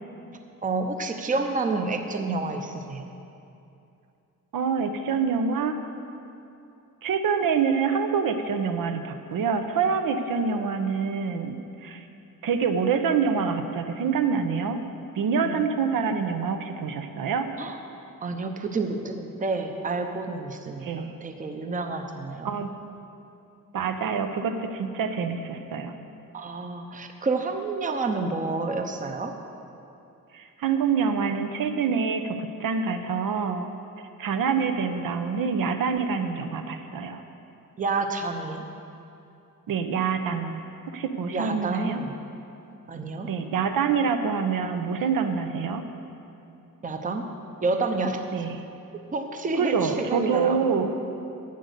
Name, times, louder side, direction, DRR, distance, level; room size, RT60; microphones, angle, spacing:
voice 1, 0.6-3.1 15.4-15.7 17.6-17.8 18.2-22.6 26.3-29.3 37.8-38.6 41.3-42.2 42.9-43.3 46.8-47.2 47.6-48.2 49.1-50.6, right 3 dB, 25° right, 5 dB, 0.7 m, -29 dB
voice 2, 4.5-5.8 7.0-12.1 12.4-14.8 15.1-17.5 20.8-21.2 22.4-22.7 23.7-25.9 30.3-33.7 34.2-37.2 39.7-40.6 40.9-42.0 43.3-45.8 48.3-48.6 49.6-50.9, right 6 dB, 75° right, 7 dB, 0.8 m, -26 dB
10.5 x 9.2 x 6.7 m, 2.7 s
wide cardioid pair, 165°, 33 cm